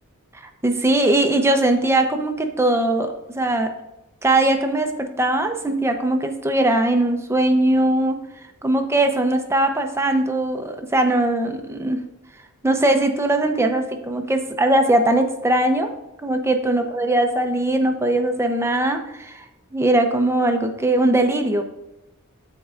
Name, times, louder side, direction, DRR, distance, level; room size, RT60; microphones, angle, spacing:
voice 1, 0.6-3.7 4.2-8.2 8.6-12.0 12.6-15.9 16.2-19.4 19.7-21.6, right 1 dB, 10° right, 5 dB, 0.7 m, -20 dB
12.5 x 4.5 x 2.5 m, 0.93 s
head